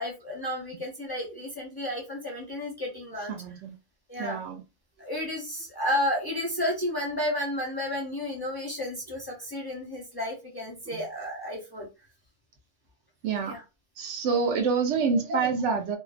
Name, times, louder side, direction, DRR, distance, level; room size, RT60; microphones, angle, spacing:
voice 1, 0.0-3.3 4.1-4.4 5.0-11.9 13.4-13.6, left 1 dB, 25° left, -3 dB, 0.6 m, -32 dB
voice 2, 3.3-3.8 4.2-4.6 10.9-11.0 13.2-13.5 14.0-16.0, right 5 dB, 65° right, 5 dB, 0.8 m, -27 dB
2.5 x 2.2 x 2.4 m, 0.27 s
omnidirectional pair, 1.5 m